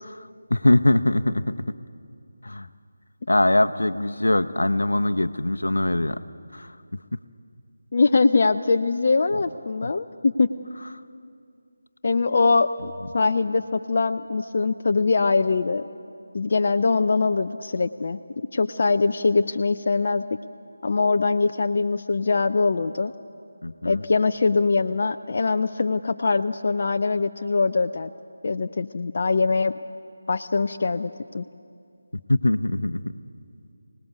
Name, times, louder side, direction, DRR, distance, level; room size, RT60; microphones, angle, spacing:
voice 1, 0.5-1.7 2.4-2.7 3.3-6.2 6.5-7.2 9.8-9.9 23.6-24.0 32.1-33.1, left 1 dB, 75° left, 10 dB, 0.9 m, -22 dB
voice 2, 7.9-10.5 12.0-15.8 16.3-18.2 18.5-20.2 20.8-23.1 23.8-28.1 28.4-29.7 30.3-31.4, left 4 dB, 45° left, 7 dB, 0.5 m, -22 dB
26.5 x 18.5 x 8.0 m, 2.4 s
figure-of-eight pair, 160°, 0 cm